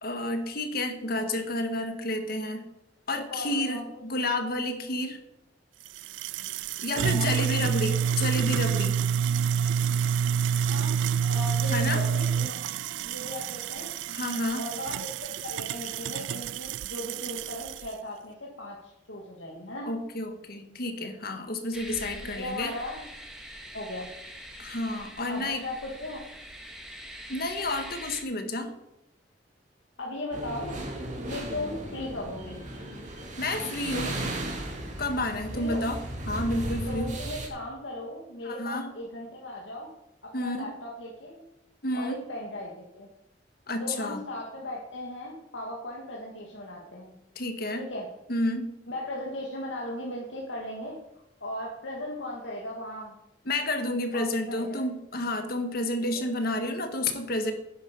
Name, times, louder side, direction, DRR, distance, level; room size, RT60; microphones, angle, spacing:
voice 1, 0.0-2.7 3.1-5.2 6.8-9.0 11.7-12.0 14.1-14.6 19.8-22.7 24.6-25.6 27.3-28.7 33.4-34.2 35.0-37.1 38.4-38.9 40.3-40.7 41.8-42.2 43.7-44.2 47.4-47.8 48.3-48.7 53.5-57.5, left 1 dB, 55° left, 6 dB, 1.7 m, -30 dB
voice 2, 3.1-3.8 6.9-7.8 10.7-12.5 12.8-13.9 14.6-19.9 22.2-23.0 23.7-24.1 25.3-26.2 30.0-30.8 31.3-32.6 35.5-35.9 36.9-39.9 40.2-41.4 41.9-43.1 43.8-47.1 47.8-48.1 48.9-51.0 51.4-53.2 54.1-54.8 56.0-56.2, left 1 dB, 90° left, -2 dB, 2.2 m, -37 dB
sound 1, 5.9-17.9, right 7 dB, 80° right, 0.3 m, -28 dB
sound 2, 21.7-28.2, equal, 5° right, 2.0 m, -44 dB
sound 3, 30.3-37.5, right 1 dB, 40° right, 2.7 m, -35 dB
11.0 x 10.5 x 5.3 m, 0.88 s
head